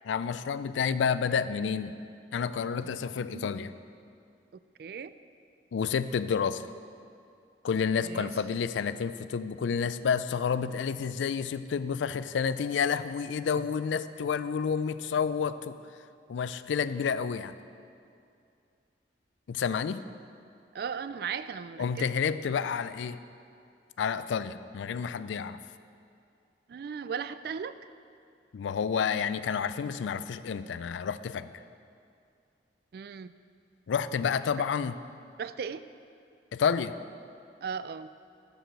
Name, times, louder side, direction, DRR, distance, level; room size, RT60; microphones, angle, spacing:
voice 1, 0.0-2.0 2.3-3.7 5.7-6.7 7.6-15.8 16.3-17.6 19.5-20.0 21.8-23.2 24.0-25.6 28.5-31.5 33.9-35.0 36.5-37.0, left 6 dB, 90° left, 13 dB, 0.4 m, -30 dB
voice 2, 4.8-5.1 8.0-8.3 20.7-22.1 26.7-27.7 32.9-33.3 35.4-35.8 37.6-38.1, right 6 dB, 55° right, 14 dB, 0.3 m, -37 dB
12.5 x 4.8 x 6.4 m, 2.4 s
head